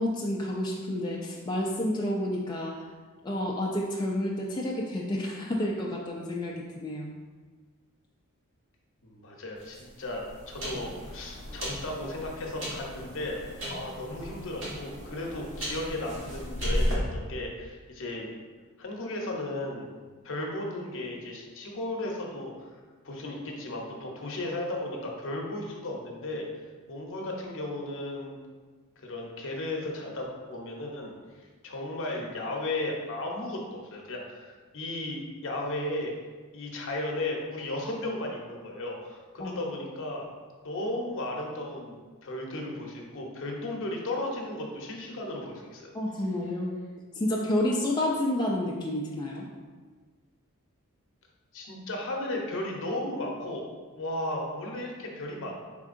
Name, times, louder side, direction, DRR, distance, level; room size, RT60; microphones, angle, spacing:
voice 1, 0.0-2.9 3.2-7.1 39.4-39.6 45.9-46.7 47.1-49.5, left 1 dB, 20° left, -3 dB, 0.3 m, -30 dB
voice 2, 9.0-13.4 13.7-18.3 18.8-19.9 20.2-22.7 23.0-26.4 26.9-28.4 29.0-36.1 36.5-40.2 40.6-45.9 51.5-53.6 54.0-55.5, left 1 dB, 60° left, 0 dB, 0.7 m, -35 dB
sound 1, 9.6-16.9, equal, 60° right, 1.4 m, -35 dB
4.3 x 3.6 x 2.5 m, 1.4 s
head